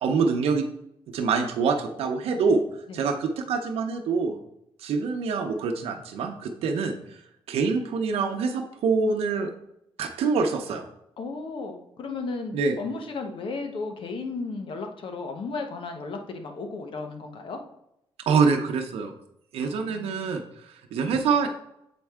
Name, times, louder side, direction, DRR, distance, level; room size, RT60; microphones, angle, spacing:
voice 1, 0.0-0.7 1.1-2.6 2.9-4.4 4.8-7.2 7.5-9.5 10.0-10.8 12.5-12.8 18.3-19.1 19.5-21.5, right 5 dB, 80° right, 3 dB, 0.7 m, -25 dB
voice 2, 11.2-17.6 19.6-20.3, left 3 dB, 60° left, 5 dB, 1.1 m, -34 dB
7.4 x 4.4 x 3.6 m, 0.77 s
cardioid pair, 100°, 10 cm